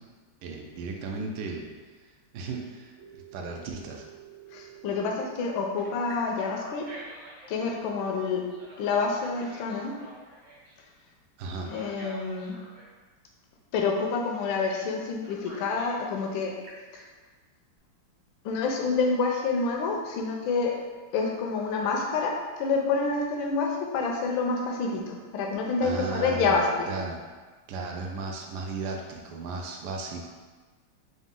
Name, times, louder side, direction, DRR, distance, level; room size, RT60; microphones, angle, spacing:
voice 1, 0.4-1.7 2.3-4.0 11.4-11.7 25.8-27.2 27.7-30.3, right 3 dB, 75° right, 1 dB, 0.9 m, -35 dB
Telephone, 3.0-5.2 5.8-7.5 8.5-10.8 11.6-12.9 14.7-14.9 15.2-16.0 16.4-17.0, right 3 dB, 55° right, 1.2 m, -48 dB
voice 2, 4.5-6.9 7.5-8.4 8.8-9.9 11.7-12.5 13.7-16.5 16.9-17.0 18.4-20.7 21.1-26.9, left 4 dB, 75° left, 1 dB, 1.3 m, -28 dB
3.9 x 2.6 x 3.6 m, 1.4 s
omnidirectional pair, 2.3 m